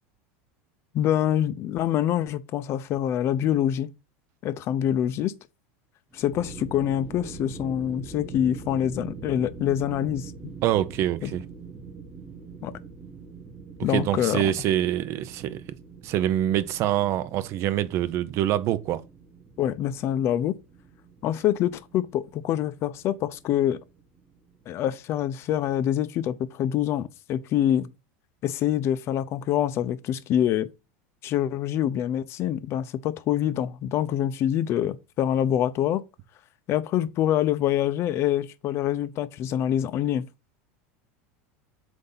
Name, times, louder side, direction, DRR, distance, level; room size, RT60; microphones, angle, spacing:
voice 1, 0.9-3.9 4.4-5.3 6.1-10.5 11.2-11.4 12.6-12.7 13.8-14.4 19.6-20.6 21.2-23.8 24.7-27.9 28.4-30.7 31.2-36.0 36.7-40.3, left 11 dB, 40° left, 0.6 m, -25 dB
sound 1, 6.1-24.9, right 4 dB, 15° right, 1.2 m, -44 dB
voice 2, 10.6-11.4 13.9-15.6 16.0-19.0, right 12 dB, 45° right, 0.6 m, -25 dB
7.8 x 2.7 x 5.5 m
supercardioid pair, 130°, 7 cm